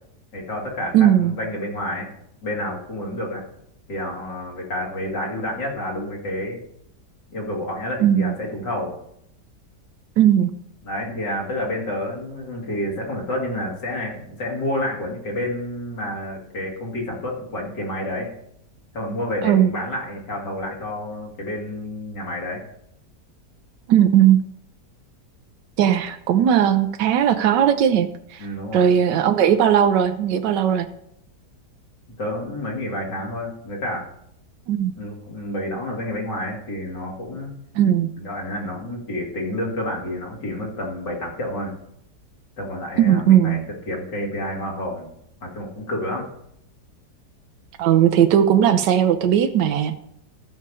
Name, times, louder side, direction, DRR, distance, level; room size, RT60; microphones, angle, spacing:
voice 1, 0.3-2.1 2.4-3.4 3.9-6.6 7.3-9.0 10.8-18.3 18.9-22.6 28.4-28.9 32.2-34.1 35.0-37.5 38.2-41.7 42.6-45.1 45.4-46.3, left 1 dB, 85° left, -2 dB, 2.9 m, -29 dB
voice 2, 0.9-1.3 8.0-8.4 10.2-10.5 19.4-19.7 23.9-24.4 25.8-28.5 28.7-30.9 34.7-34.9 37.7-38.1 43.0-43.6 47.8-49.9, right 10 dB, 85° right, 8 dB, 1.3 m, -17 dB
15.0 x 5.5 x 4.8 m, 0.75 s
omnidirectional pair, 1.8 m